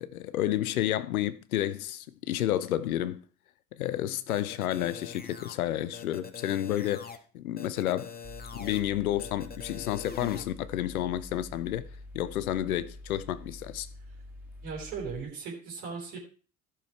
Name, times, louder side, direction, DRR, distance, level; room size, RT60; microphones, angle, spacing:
voice 1, 0.0-3.2 3.7-8.2 8.5-11.8 12.1-13.9, left 12 dB, 80° left, 0.8 m, -30 dB
sound 1, 4.3-5.5 5.9-7.2 7.6-8.8 9.2-10.4, left 6 dB, 20° left, 1.8 m, -43 dB
Mechanical fan, 8.2-15.2, left 2 dB, 5° right, 2.8 m, -46 dB
voice 2, 14.6-16.2, right 5 dB, 65° right, 3.8 m, -37 dB
14.0 x 6.3 x 4.6 m
figure-of-eight pair, 55°, 42 cm